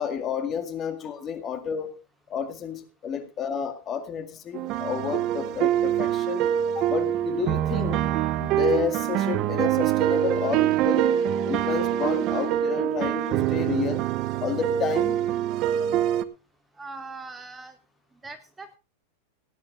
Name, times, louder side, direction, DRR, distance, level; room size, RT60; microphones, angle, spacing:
voice 1, 0.0-2.0 2.3-6.5 6.8-8.0 8.4-11.1 11.4-14.0 14.4-15.2, left 7 dB, 25° left, 8 dB, 2.0 m, -30 dB
sound 1, 4.5-16.2, right 11 dB, 35° right, 0.9 m, -25 dB
voice 2, 16.7-17.8 18.1-18.8, right 3 dB, 10° right, 10 dB, 0.9 m, -41 dB
18.5 x 9.5 x 3.8 m, 0.30 s
supercardioid pair, 155°, 0 cm